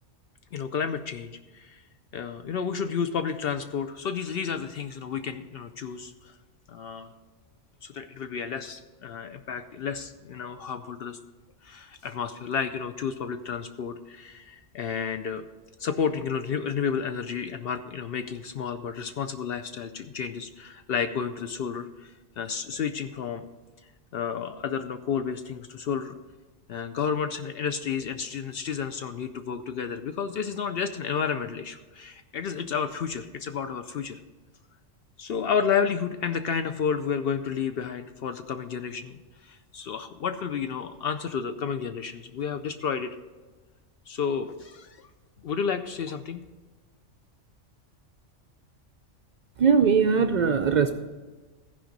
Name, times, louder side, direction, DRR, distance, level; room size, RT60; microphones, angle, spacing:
voice 1, 0.5-1.8 2.1-6.3 6.7-7.1 7.8-11.2 11.6-15.5 15.8-23.4 24.1-26.2 26.7-34.2 35.2-43.2 44.1-45.1 45.4-46.4, left 6 dB, 60° left, 9 dB, 0.7 m, -31 dB
voice 2, 49.6-50.9, right 6 dB, 60° right, 6 dB, 0.4 m, -20 dB
15.0 x 5.0 x 5.2 m, 1.3 s
omnidirectional pair, 1.3 m